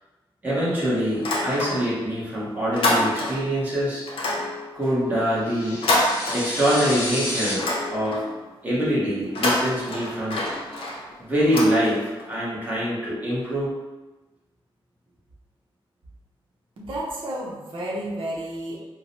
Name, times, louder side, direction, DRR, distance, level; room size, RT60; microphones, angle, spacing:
voice 1, 0.4-4.1 4.7-5.8 6.3-8.3 8.6-10.4 11.2-13.7, equal, 20° right, -8 dB, 1.1 m, -24 dB
sound 1, 1.1-2.1 2.4-3.6 4.1-6.9 7.3-8.4 9.2-12.3, left 1 dB, 80° left, 0.7 m, -27 dB
sound 2, 5.4-7.5, left 1 dB, 30° left, 0.8 m, -30 dB
voice 2, 16.8-18.9, right 1 dB, 65° right, -4 dB, 0.8 m, -31 dB
4.6 x 2.1 x 2.7 m, 1.2 s
wide cardioid pair, 155°, 9 cm